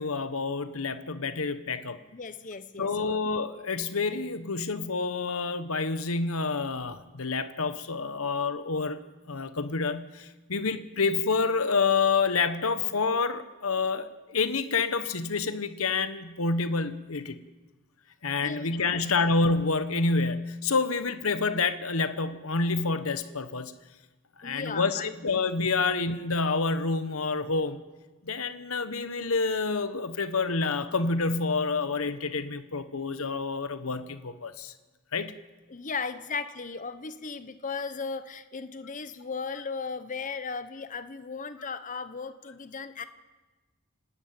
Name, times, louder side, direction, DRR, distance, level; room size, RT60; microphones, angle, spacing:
voice 1, 0.0-2.0 2.8-9.0 9.3-17.4 18.2-23.7 24.4-27.8 28.2-34.7 35.1-35.3, left 4 dB, 75° left, 11 dB, 1.2 m, -28 dB
voice 2, 2.1-3.1 18.4-19.0 24.4-25.1 35.7-43.0, left 5 dB, 35° left, 11 dB, 0.9 m, -36 dB
28.0 x 12.5 x 8.8 m, 1.2 s
head